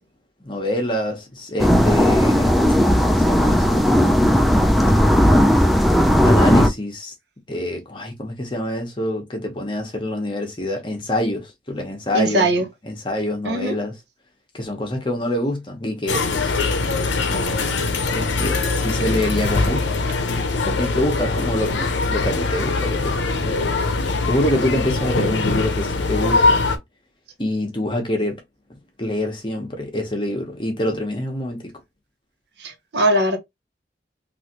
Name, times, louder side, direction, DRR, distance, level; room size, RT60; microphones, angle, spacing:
voice 1, 0.4-2.6 2.9-3.9 6.2-7.1 7.5-12.5 12.8-14.0 14.5-16.5 17.3-17.7 18.1-19.9 20.6-23.6 24.3-26.6 27.4-28.4 29.0-31.7, left 1 dB, 25° left, 0.9 m, -26 dB
sound 1, 1.6-6.7, equal, ahead, 0.3 m, -16 dB
voice 2, 12.1-12.6 13.4-13.8 32.6-33.4, right 1 dB, 65° right, 0.8 m, -20 dB
sound 2, 16.1-26.8, left 3 dB, 85° left, 0.6 m, -22 dB
3.2 x 2.5 x 2.8 m
head